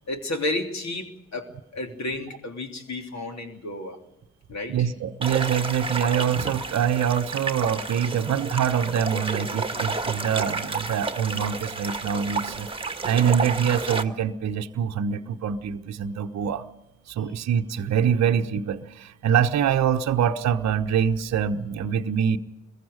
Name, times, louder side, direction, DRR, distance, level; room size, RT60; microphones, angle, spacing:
voice 1, 0.1-4.0 4.5-4.9, left 2 dB, 45° left, 3.2 m, -32 dB
voice 2, 4.7-12.7 13.0-16.6 17.1-22.4, right 8 dB, 45° right, 1.1 m, -24 dB
sound 1, 5.2-14.0, right 3 dB, 15° right, 1.7 m, -31 dB
26.5 x 22.0 x 5.2 m
figure-of-eight pair, 40°, 37 cm